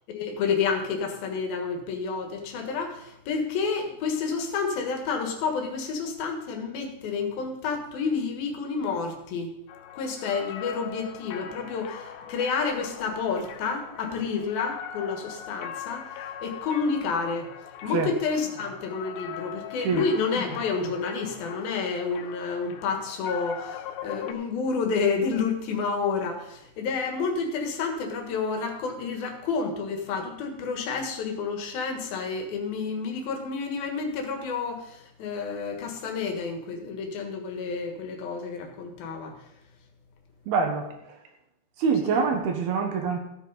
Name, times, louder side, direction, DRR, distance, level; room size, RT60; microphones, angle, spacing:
voice 1, 0.1-9.5 9.9-16.1 16.4-17.5 17.8-39.3 42.1-42.2, left 5 dB, 65° left, 3 dB, 3.1 m, -29 dB
sound 1, 9.7-24.3, left 9 dB, 85° left, 3.1 m, -41 dB
voice 2, 40.5-40.9 41.8-43.2, right 5 dB, 70° right, 3 dB, 3.0 m, -25 dB
15.0 x 9.3 x 4.0 m, 0.84 s
omnidirectional pair, 5.1 m